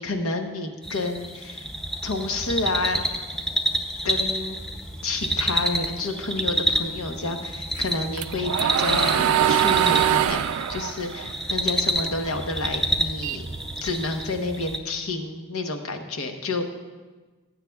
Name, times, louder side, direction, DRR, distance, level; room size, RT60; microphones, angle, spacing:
voice 1, 0.0-1.7 2.0-3.0 4.0-4.6 5.0-13.4 13.8-16.6, left 2 dB, 90° left, 5 dB, 1.0 m, -29 dB
sound 1, 0.8-14.8, right 1 dB, 5° left, 0.5 m, -29 dB
sound 2, 7.8-12.3 12.7-14.2, right 10 dB, 85° right, 0.4 m, -23 dB
19.0 x 8.2 x 2.3 m, 1.3 s
head